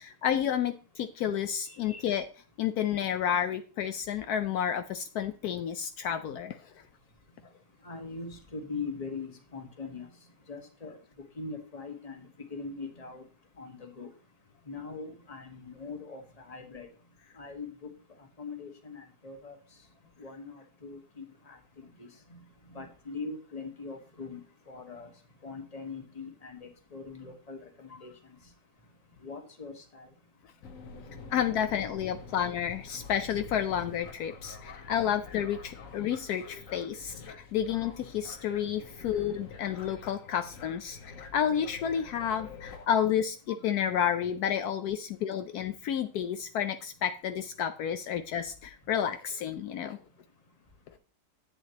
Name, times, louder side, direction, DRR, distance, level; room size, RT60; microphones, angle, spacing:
voice 1, 0.0-2.3 2.6-6.6 31.3-50.0, left 9 dB, 75° left, 8 dB, 1.1 m, -30 dB
voice 2, 1.7-2.0 7.8-10.1 10.5-11.0 11.4-13.2 13.6-14.1 14.7-16.9 17.4-17.9 18.4-19.5 20.2-22.4 22.7-24.4 24.7-25.1 25.4-28.1 29.2-30.1 31.6-31.8 43.5-43.6, left 4 dB, 25° left, 4 dB, 1.4 m, -42 dB
sound 1, 30.6-42.9, left 4 dB, 55° left, 1.4 m, -47 dB
10.5 x 8.2 x 2.9 m, 0.37 s
omnidirectional pair, 1.7 m